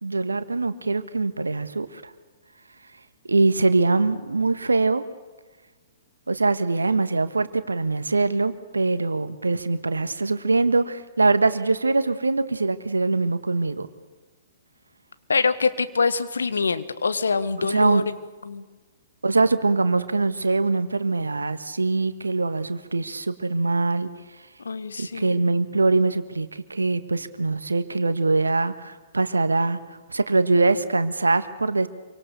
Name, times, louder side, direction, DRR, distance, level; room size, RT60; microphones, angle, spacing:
voice 1, 0.0-2.1 3.3-5.0 6.3-13.9 17.6-18.1 19.2-24.1 25.0-29.8 30.1-31.9, right 3 dB, 75° right, 12 dB, 1.4 m, -23 dB
voice 2, 15.3-18.0 18.4-18.6 24.6-25.4, left 4 dB, 70° left, 12 dB, 1.6 m, -24 dB
27.0 x 24.5 x 6.8 m, 1.3 s
figure-of-eight pair, 115°, 0 cm